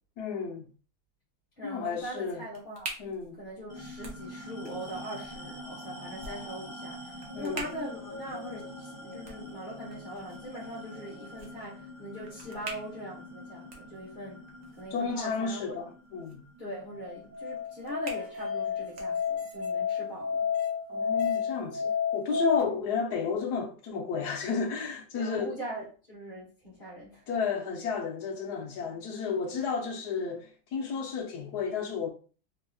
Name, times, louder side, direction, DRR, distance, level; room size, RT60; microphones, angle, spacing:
voice 1, 0.2-0.7 1.6-2.4 3.0-3.4 7.3-7.7 14.9-16.4 20.9-25.5 27.3-32.1, left 5 dB, 60° left, 1.1 m, -32 dB
voice 2, 1.6-2.9 3.4-14.5 14.7-15.8 16.6-20.5 22.6-22.7 25.1-27.3, equal, 35° left, 1.0 m, -41 dB
sound 1, 1.9-19.7, right 3 dB, 75° right, 0.6 m, -48 dB
sound 2, 3.7-18.5, left 1 dB, 35° right, 0.5 m, -45 dB
Musical instrument, 16.9-22.6, left 7 dB, 50° right, 1.1 m, -30 dB
3.5 x 2.8 x 2.3 m
omnidirectional pair, 2.3 m